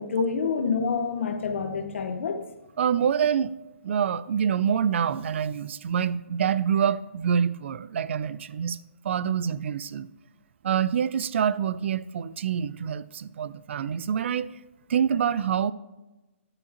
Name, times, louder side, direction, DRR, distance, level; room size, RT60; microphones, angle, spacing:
voice 1, 0.0-2.4, left 5 dB, 65° left, 1.0 m, -27 dB
voice 2, 2.8-3.5 3.8-8.8 9.0-10.1 10.6-14.5 14.9-15.7, right 8 dB, 60° right, 0.4 m, -26 dB
9.6 x 7.2 x 2.9 m
hypercardioid pair, 145°, 7 cm